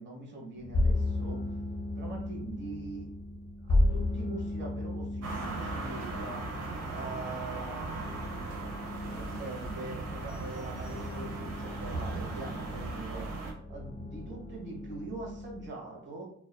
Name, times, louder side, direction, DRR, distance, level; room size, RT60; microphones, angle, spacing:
voice 1, 0.0-1.4 1.9-3.1 3.6-6.4 6.9-8.2 9.1-13.3 13.7-16.3, right 3 dB, 35° right, -1 dB, 1.1 m, -43 dB
sound 1, 0.6-15.7, left 2 dB, 30° left, 0.5 m, -35 dB
sound 2, 5.2-13.5, right 3 dB, 55° right, 0.8 m, -38 dB
2.6 x 2.1 x 2.2 m, 0.68 s
cardioid pair, 90°, 30 cm